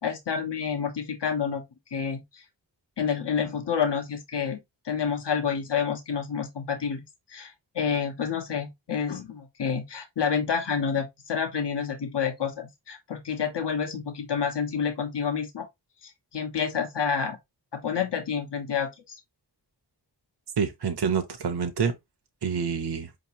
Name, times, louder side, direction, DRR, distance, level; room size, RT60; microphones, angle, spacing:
voice 1, 0.0-1.6 1.9-2.4 3.0-7.0 7.3-15.7 16.0-17.4 17.7-19.2, left 6 dB, 80° left, 0.9 m, -29 dB
voice 2, 20.6-21.9 22.4-23.1, right 6 dB, 70° right, 0.7 m, -27 dB
4.9 x 2.9 x 2.8 m
wide cardioid pair, 55°, 41 cm